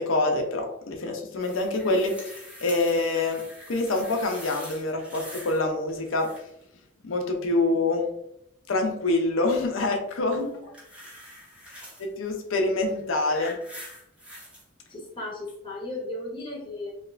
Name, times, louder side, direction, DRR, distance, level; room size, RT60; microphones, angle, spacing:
voice 1, 0.0-3.4 3.7-6.3 7.0-8.1 8.7-10.4 11.7-13.6, left 2 dB, 75° left, 3 dB, 0.6 m, -26 dB
sound 1, 1.4-5.6 5.9-6.6 10.3-12.1 12.9-14.6 15.5-15.6, equal, 5° right, 0.7 m, -44 dB
voice 2, 14.9-16.9, left 2 dB, 25° left, -3 dB, 0.9 m, -35 dB
2.9 x 2.4 x 3.2 m, 0.80 s
head